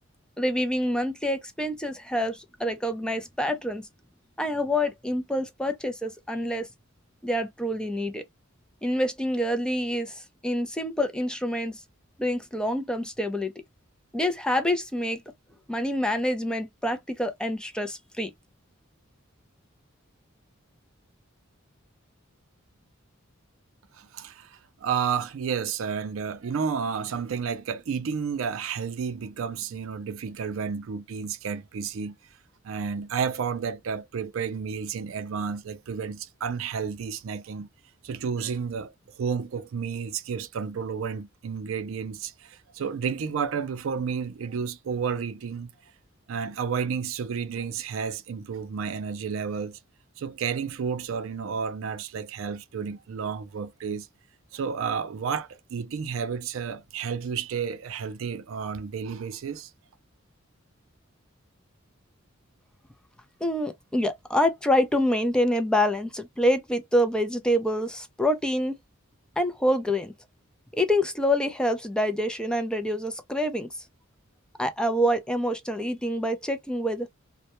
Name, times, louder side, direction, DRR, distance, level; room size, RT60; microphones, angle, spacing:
voice 1, 0.4-3.9 4.4-6.7 7.2-8.2 8.8-11.8 12.2-13.5 14.1-15.2 15.7-18.3 63.4-68.8 69.4-70.1 70.7-73.8 74.6-77.1, left 1 dB, 5° left, 0.4 m, -26 dB
voice 2, 23.9-32.2 32.6-37.7 38.0-45.7 46.3-49.8 50.2-54.1 54.5-59.7, right 6 dB, 70° right, 0.4 m, -31 dB
2.1 x 2.1 x 2.8 m
head